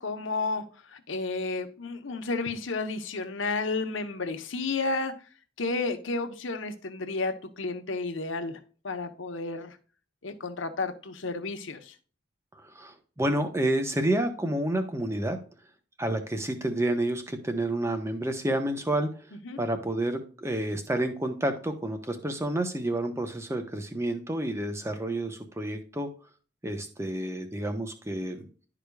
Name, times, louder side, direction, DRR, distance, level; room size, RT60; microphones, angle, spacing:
voice 1, 0.0-5.2 5.6-9.8 10.2-11.9 19.4-19.6, left 3 dB, 80° left, 1.0 m, -32 dB
voice 2, 12.6-15.4 16.0-19.1 19.6-26.1 26.6-28.5, right 1 dB, 15° right, 1.0 m, -29 dB
11.5 x 5.0 x 2.4 m
head